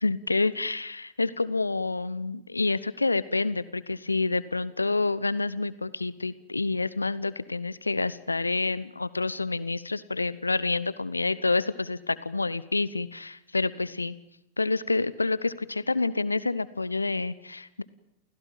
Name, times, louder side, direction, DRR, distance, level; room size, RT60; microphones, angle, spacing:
voice 1, 0.0-14.1 14.6-17.8, left 3 dB, 80° left, 17 dB, 1.0 m, -28 dB
28.5 x 16.5 x 9.2 m, 0.85 s
figure-of-eight pair, 90°, 0 cm